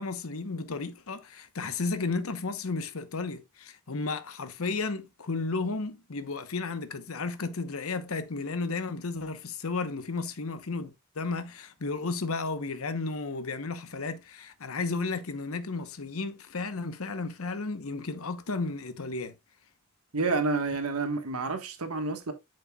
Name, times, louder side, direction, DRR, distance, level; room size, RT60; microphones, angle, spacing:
voice 1, 0.0-19.3, left 3 dB, 75° left, 0.9 m, -33 dB
voice 2, 20.1-22.3, right 3 dB, 85° right, 1.4 m, -29 dB
8.4 x 6.5 x 2.3 m
head